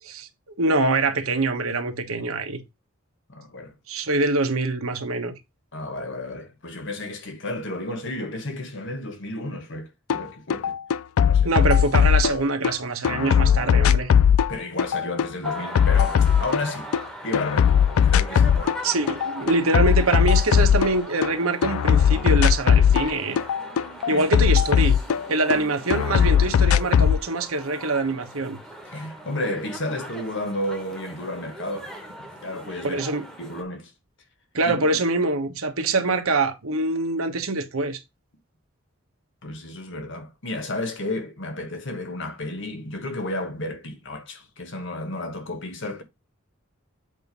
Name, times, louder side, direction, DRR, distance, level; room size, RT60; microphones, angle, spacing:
voice 1, 0.0-2.6 3.9-5.3 11.4-14.1 18.8-23.4 24.1-25.0 25.3-28.6 32.8-33.3 34.5-38.0, right 3 dB, 90° right, 1.3 m, -24 dB
voice 2, 3.3-3.7 5.7-10.8 11.2-11.5 14.5-16.9 17.2-18.8 19.4-19.5 24.1-24.3 28.9-31.9 32.2-33.0 33.4-33.9 34.6-34.7 39.4-46.0, left 1 dB, 60° left, 1.4 m, -32 dB
sound 1, 10.1-10.2 10.5-12.7 13.0-17.0 17.3-18.8 19.1-21.3 21.6-25.6 25.9-27.2, left 8 dB, 80° left, 0.4 m, -19 dB
sound 2, 15.4-33.6, right 1 dB, ahead, 1.2 m, -40 dB
8.0 x 2.8 x 5.3 m
head